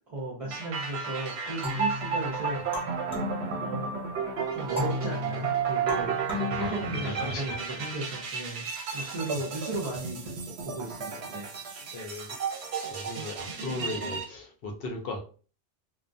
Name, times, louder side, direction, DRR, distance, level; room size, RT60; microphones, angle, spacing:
voice 1, 0.1-2.6 3.5-3.9 4.5-6.1 6.4-8.7 8.9-10.3 10.6-11.5, right 2 dB, 45° right, 0.5 m, -35 dB
sound 1, 0.5-14.2, right 6 dB, 70° right, 0.8 m, -33 dB
sound 2, 1.6-4.1 4.8-7.6, left 3 dB, 5° right, 0.8 m, -36 dB
voice 2, 6.5-7.6 8.9-9.4 11.1-11.2 11.6-12.4 12.8-15.2, left 2 dB, 65° left, 0.7 m, -38 dB
2.2 x 2.2 x 2.5 m
omnidirectional pair, 1.2 m